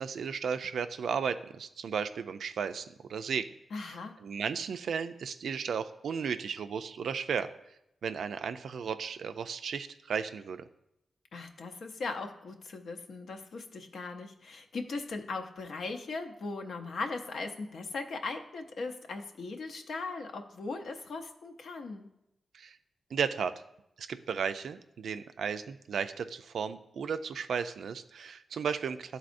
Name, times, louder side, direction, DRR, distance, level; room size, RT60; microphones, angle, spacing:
voice 1, 0.0-3.5 4.2-7.5 8.0-10.7 22.5-22.7 23.1-23.5 24.0-29.2, right 6 dB, 85° right, 10 dB, 0.3 m, -34 dB
voice 2, 3.7-4.2 11.3-22.1, left 3 dB, 80° left, 4 dB, 0.6 m, -39 dB
11.5 x 4.0 x 2.5 m, 0.83 s
cardioid pair, 95°, 0 cm